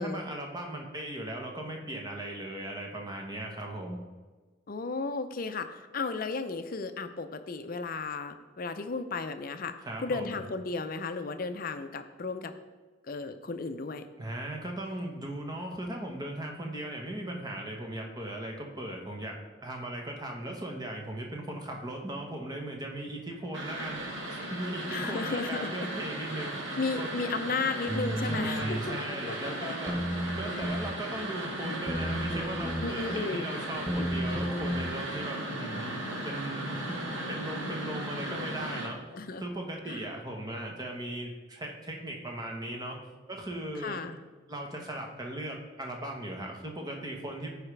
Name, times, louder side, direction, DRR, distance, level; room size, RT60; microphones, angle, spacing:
voice 1, 0.0-4.0 9.8-10.4 14.2-24.0 24.3-26.7 26.9-27.1 28.2-30.0 30.4-37.0 37.3-39.0 39.4-43.0 43.3-44.0 44.5-47.5, right 1 dB, 20° right, 1 dB, 1.1 m, -38 dB
voice 2, 4.7-9.7 10.0-12.5 13.1-14.1 24.9-25.7 26.8-29.0 29.3-29.7 30.5-30.8 31.6-31.9 32.8-33.5 34.0-34.1 39.1-39.4 39.9-40.1 43.8-44.2, left 4 dB, 45° left, 9 dB, 0.5 m, -34 dB
sound 1, 23.5-38.9, right 1 dB, 80° right, 1.7 m, -36 dB
sound 2, 27.9-28.9 29.9-30.9 31.9-32.9 33.9-34.8, equal, ahead, 0.7 m, -32 dB
14.0 x 4.9 x 3.3 m, 1.3 s
head